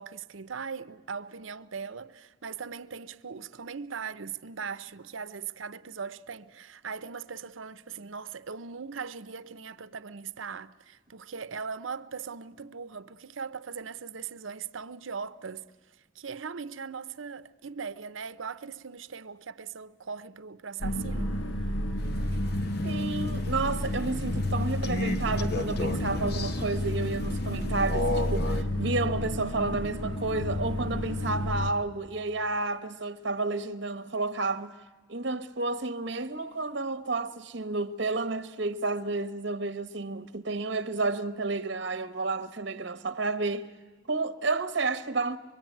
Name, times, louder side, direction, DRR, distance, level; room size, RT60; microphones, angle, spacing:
voice 1, 0.0-15.7 16.1-21.4, right 6 dB, 90° right, 0.7 m, -39 dB
sound 1, 20.8-31.7, left 1 dB, 75° left, 1.3 m, -31 dB
Crow, 22.0-28.6, left 1 dB, 55° left, 1.1 m, -34 dB
voice 2, 22.8-34.7 35.1-43.7 44.1-45.4, right 3 dB, 60° right, 1.1 m, -31 dB
24.5 x 23.0 x 9.2 m
head